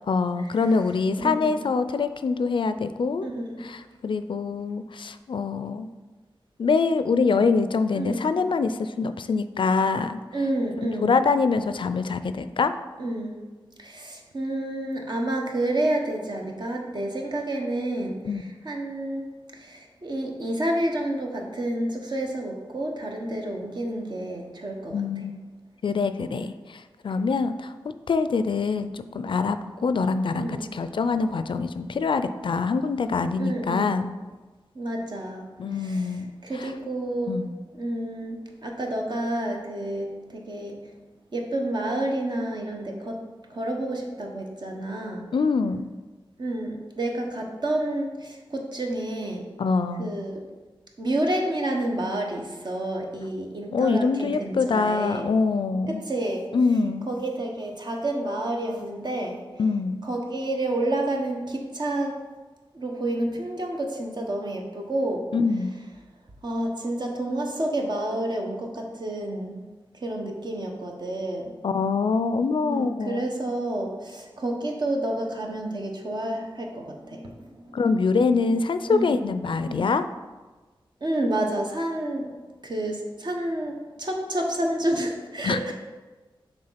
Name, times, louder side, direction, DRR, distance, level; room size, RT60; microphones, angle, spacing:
voice 1, 0.1-3.3 3.6-5.9 6.6-10.2 10.8-12.7 18.2-18.4 24.9-25.4 25.8-27.7 28.1-34.1 35.6-36.7 37.3-37.5 45.3-45.8 49.6-50.1 53.7-56.0 56.5-57.1 59.6-60.0 65.3-65.7 71.6-73.3 77.7-80.0 85.4-85.7, left 4 dB, 65° left, 11 dB, 0.4 m, -24 dB
voice 2, 1.2-1.6 3.2-3.6 7.9-8.3 10.3-11.1 13.0-13.4 13.8-18.2 18.6-19.2 19.6-25.0 26.3-26.5 30.3-30.7 33.4-33.9 34.7-35.5 35.8-37.4 37.7-40.8 41.3-43.2 43.5-45.2 46.4-49.4 50.0-50.4 51.0-55.2 55.9-56.5 57.1-59.4 60.0-62.1 62.7-65.2 66.4-69.5 70.0-71.5 72.6-77.3 78.9-79.2 79.6-79.8 81.0-82.2 82.6-83.7 84.0-85.7, right 1 dB, 55° right, 1 dB, 1.2 m, -29 dB
6.7 x 3.6 x 5.7 m, 1.3 s
wide cardioid pair, 80°, 9 cm